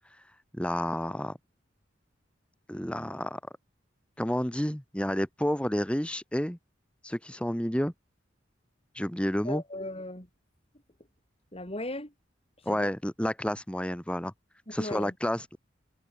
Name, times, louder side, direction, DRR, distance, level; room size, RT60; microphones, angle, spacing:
voice 1, 0.5-1.4 2.7-3.4 4.2-6.6 7.0-7.9 8.9-9.6 12.6-14.3 14.7-15.6, equal, 5° left, 1.5 m, -30 dB
voice 2, 9.4-10.3 11.5-12.1 12.7-12.9 14.7-15.1, left 1 dB, 30° left, 7.5 m, -37 dB
head